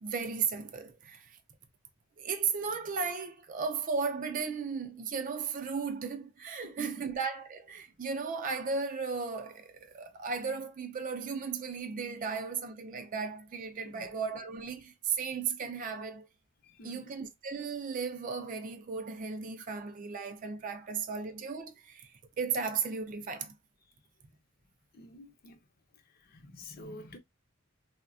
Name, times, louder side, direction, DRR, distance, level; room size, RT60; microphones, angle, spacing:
voice 1, 0.0-1.4 2.2-16.3 16.8-22.1 22.4-23.5, right 5 dB, 40° right, 0.4 m, -35 dB
voice 2, 6.6-7.1 13.8-14.1 16.6-17.1 24.9-25.6 26.2-27.2, equal, 50° left, 0.6 m, -48 dB
3.3 x 2.1 x 2.4 m
head